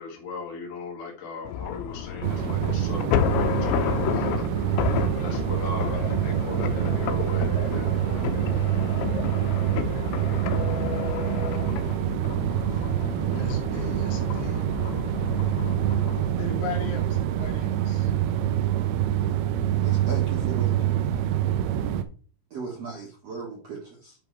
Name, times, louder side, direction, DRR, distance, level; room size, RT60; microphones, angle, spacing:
voice 1, 0.0-4.3 4.7-8.5, left 4 dB, 50° left, -2 dB, 3.8 m, -38 dB
sound 1, 1.5-16.3, left 10 dB, 85° left, 3.0 m, -31 dB
sound 2, 2.2-22.0, right 11 dB, 80° right, 2.3 m, -26 dB
voice 2, 13.3-14.6 16.4-18.1, left 3 dB, 70° left, -2 dB, 4.1 m, -36 dB
voice 3, 19.8-20.8 22.5-24.2, right 4 dB, 55° right, -2 dB, 1.9 m, -37 dB
11.0 x 3.9 x 4.5 m, 0.39 s
omnidirectional pair, 5.4 m